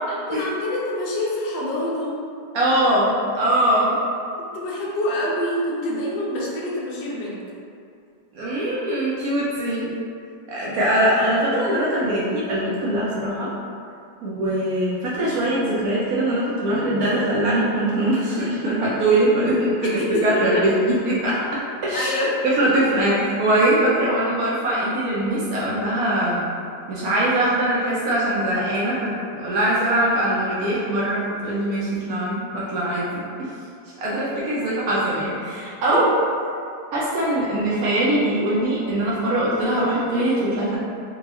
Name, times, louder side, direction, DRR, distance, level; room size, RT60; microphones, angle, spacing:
voice 1, 0.1-2.1 4.5-7.4 20.0-20.6 21.9-22.3 35.9-36.0, left 1 dB, 75° left, -5 dB, 1.3 m, -26 dB
voice 2, 2.5-4.0 8.3-9.9 10.5-13.5 14.2-21.4 21.8-22.1 22.4-26.4 26.9-33.5 34.0-36.1 36.9-40.8, right 1 dB, 70° right, -7 dB, 0.8 m, -22 dB
3.9 x 2.3 x 2.8 m, 2.4 s
omnidirectional pair, 2.0 m